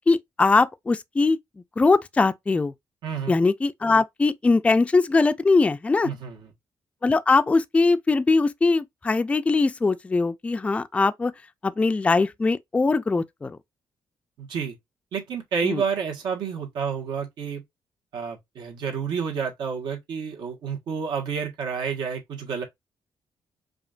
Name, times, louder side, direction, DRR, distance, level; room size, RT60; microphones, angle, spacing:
voice 1, 0.1-1.4 1.8-2.7 3.3-6.1 7.0-11.3 11.6-13.6 15.6-15.8, left 3 dB, 15° left, 0.3 m, -21 dB
voice 2, 3.0-3.3 6.0-6.5 14.4-14.7 15.1-17.6 18.1-22.6, right 6 dB, 90° right, 1.4 m, -30 dB
5.0 x 2.5 x 2.4 m
cardioid pair, 130°, 8 cm